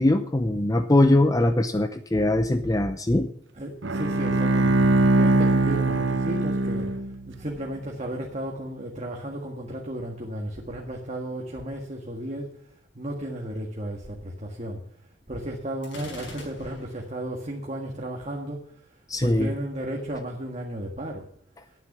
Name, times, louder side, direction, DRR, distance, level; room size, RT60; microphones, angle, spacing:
voice 1, 0.0-3.3 19.1-19.5, left 1 dB, 20° left, 9 dB, 0.7 m, -21 dB
voice 2, 3.5-6.9 7.3-12.5 12.9-14.8 15.3-21.3, right 1 dB, 35° right, 0 dB, 1.7 m, -34 dB
Bowed string instrument, 3.8-7.4, right 2 dB, 80° right, 1.0 m, -22 dB
Gunshot gunfire, 15.8-17.1, left 2 dB, 70° left, 5.3 m, -42 dB
11.5 x 9.3 x 6.1 m, 0.65 s
head